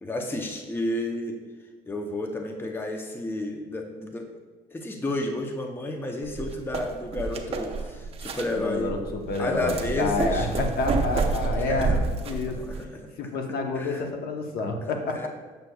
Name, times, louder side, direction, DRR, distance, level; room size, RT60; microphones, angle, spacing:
voice 1, 0.0-1.4 1.9-4.3 4.7-8.9 9.4-10.5 11.4-12.0 12.6-13.3 13.8-14.0 14.9-15.3, left 1 dB, 15° left, 3 dB, 0.6 m, -31 dB
sound 1, 6.2-12.8, right 4 dB, 35° right, 0.6 m, -29 dB
voice 2, 8.5-12.6 13.2-15.3, left 3 dB, 65° left, 3 dB, 0.8 m, -29 dB
6.7 x 6.2 x 2.3 m, 1.4 s
cardioid pair, 110°, 17 cm